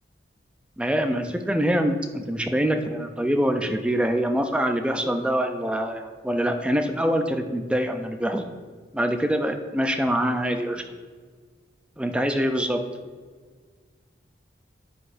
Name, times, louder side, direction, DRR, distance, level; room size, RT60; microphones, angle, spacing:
voice 1, 0.8-8.5 8.9-10.8 12.0-12.8, equal, 5° right, 6 dB, 0.3 m, -24 dB
9.7 x 4.1 x 2.5 m, 1.5 s
head